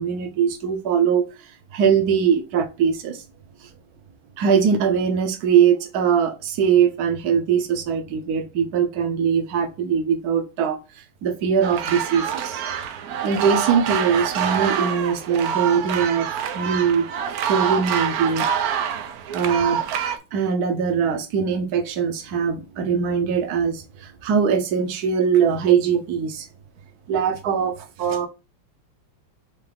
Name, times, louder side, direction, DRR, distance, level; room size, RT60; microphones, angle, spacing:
voice 1, 0.0-1.5 1.7-3.2 4.4-10.8 11.2-12.6 13.2-16.3 16.5-17.1 17.4-18.5 19.3-19.8 20.3-26.5 27.1-28.3, right 7 dB, 60° right, 1.1 m, -21 dB
sound 1, 11.6-20.2, right 8 dB, 75° right, 0.8 m, -26 dB
4.7 x 2.7 x 3.4 m
omnidirectional pair, 2.2 m